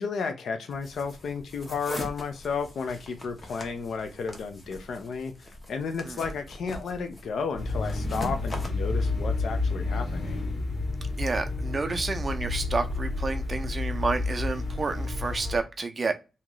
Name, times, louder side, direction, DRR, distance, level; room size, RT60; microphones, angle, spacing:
voice 1, 0.0-10.5, left 5 dB, 70° left, 7 dB, 0.6 m, -33 dB
sound 1, 0.7-8.7, left 1 dB, 25° left, 0.8 m, -41 dB
sound 2, 7.6-15.6, left 3 dB, 45° left, 1.6 m, -30 dB
voice 2, 11.2-16.1, right 4 dB, 30° right, 6 dB, 0.6 m, -30 dB
3.0 x 2.8 x 3.7 m, 0.29 s
wide cardioid pair, 145°, 0 cm